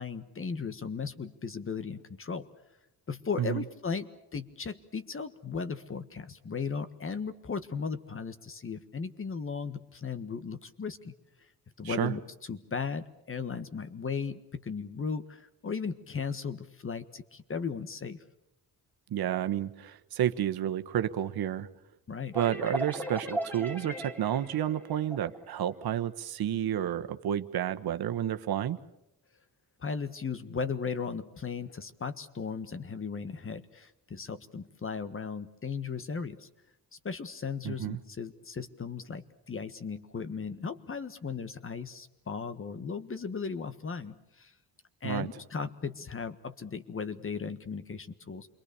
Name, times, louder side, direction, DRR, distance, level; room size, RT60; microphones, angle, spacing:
voice 1, 0.0-2.5 3.1-11.1 11.8-12.2 12.5-18.2 22.1-22.4 29.8-36.5 37.0-44.5 45.0-48.5, left 5 dB, 35° left, 11 dB, 1.5 m, -36 dB
voice 2, 19.1-21.7 22.3-28.8 37.6-38.0 45.0-45.3, right 10 dB, 75° right, 9 dB, 1.3 m, -30 dB
sound 1, 22.3-25.9, right 1 dB, 5° left, 2.3 m, -37 dB
28.0 x 22.5 x 6.9 m, 0.88 s
cardioid pair, 105°, 37 cm